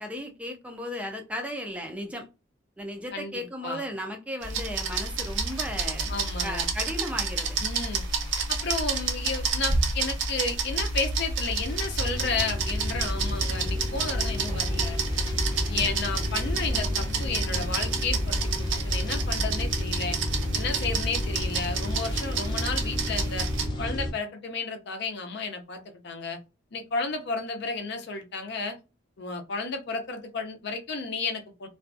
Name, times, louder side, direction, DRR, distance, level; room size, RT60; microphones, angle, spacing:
voice 1, 0.0-2.3 2.8-6.1 6.4-7.6, equal, 5° right, 0.3 m, -35 dB
voice 2, 3.1-3.8 6.1-6.7 7.6-8.0 8.5-15.0 15.7-20.2 20.5-23.5 23.8-26.4 26.7-28.8 29.2-31.7, left 4 dB, 60° left, 0.5 m, -32 dB
sound 1, 4.4-23.7, right 4 dB, 70° right, 0.5 m, -30 dB
sound 2, 4.8-24.1, left 1 dB, 20° left, 0.8 m, -32 dB
2.4 x 2.2 x 2.5 m
head